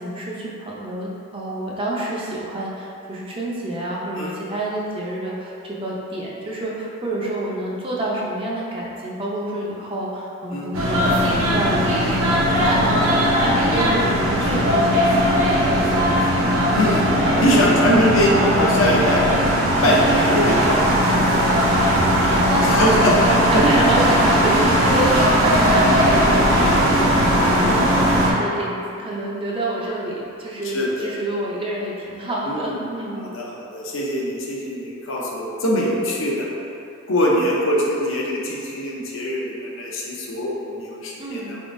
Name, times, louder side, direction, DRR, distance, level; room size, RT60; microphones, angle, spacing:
voice 1, 0.0-16.2 21.9-33.3 41.2-41.6, right 1 dB, 25° right, -4 dB, 0.5 m, -28 dB
sound 1, 10.7-28.3, equal, 80° right, 0.7 m, -18 dB
voice 2, 13.7-14.1 16.7-17.1 17.4-19.3 19.8-21.2 22.6-23.6 27.4-27.9 30.7-31.1 32.5-32.8 33.2-36.5 37.1-41.6, equal, 70° left, -3 dB, 0.6 m, -22 dB
4.2 x 3.5 x 2.5 m, 2.6 s
head